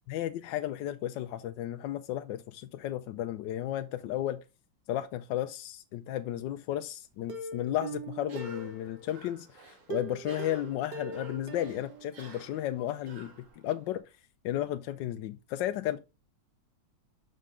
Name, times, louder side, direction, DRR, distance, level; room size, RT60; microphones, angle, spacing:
voice 1, 0.1-4.4 4.9-13.3 13.6-14.1 14.4-16.0, left 12 dB, 75° left, 1.1 m, -34 dB
Plucked string instrument, 7.3-9.3 9.9-12.7 13.0-13.1 13.5-13.6, right 3 dB, 60° right, 1.6 m, -42 dB
Cough, 8.2-14.0, right 4 dB, 40° right, 1.7 m, -51 dB
6.5 x 5.3 x 3.7 m
omnidirectional pair, 2.2 m